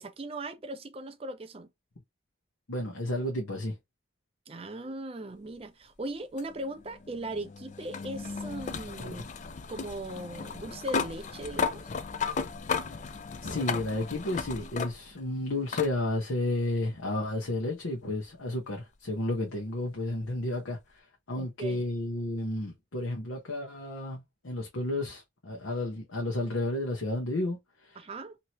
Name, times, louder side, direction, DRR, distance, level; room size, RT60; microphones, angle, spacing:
voice 1, 0.0-1.7 4.5-9.2 9.7-11.9 21.3-21.8 28.0-28.4, right 1 dB, 30° right, 0.4 m, -38 dB
voice 2, 2.7-3.8 9.0-9.3 13.4-28.0, left 1 dB, 85° left, 0.9 m, -32 dB
sound 1, 6.4-15.3 15.7-15.9 17.2-17.3 20.2-20.3, left 5 dB, 35° left, 0.3 m, -35 dB
2.9 x 2.7 x 2.8 m
head